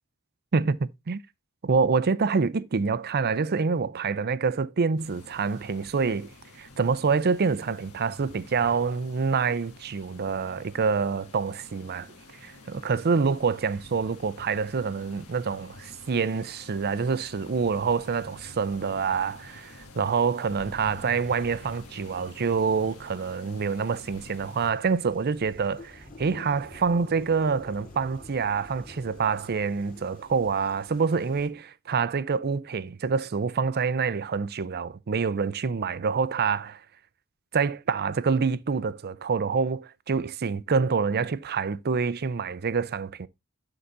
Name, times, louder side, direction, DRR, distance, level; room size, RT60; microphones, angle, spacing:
voice 1, 0.5-1.2 1.6-6.3 6.6-12.1 12.4-36.8 37.5-43.3, right 5 dB, 45° right, 0.5 m, -26 dB
sound 1, 5.0-24.7, left 2 dB, 80° left, 1.5 m, -48 dB
sound 2, 21.3-31.5, left 2 dB, 40° left, 4.0 m, -50 dB
11.0 x 3.9 x 4.0 m
head